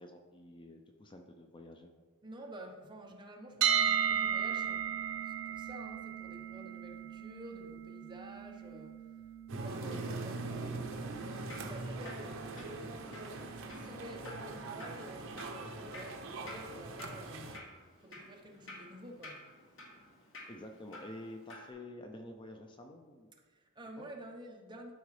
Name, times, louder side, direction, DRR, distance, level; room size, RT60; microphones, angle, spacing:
voice 1, 0.0-1.9 9.8-10.4 20.5-23.3 24.0-24.1, left 1 dB, 25° left, 4 dB, 0.5 m, -49 dB
voice 2, 2.2-9.0 9.5-17.5 18.0-19.4 23.5-24.9, right 1 dB, 20° right, 1 dB, 0.9 m, -50 dB
sound 1, 3.6-15.5, right 8 dB, 85° right, 1.0 m, -37 dB
sound 2, 9.5-17.6, right 2 dB, 65° right, 0.8 m, -42 dB
Drip, 11.1-21.7, left 1 dB, 65° left, 1.7 m, -52 dB
12.0 x 4.8 x 3.2 m, 1.4 s
head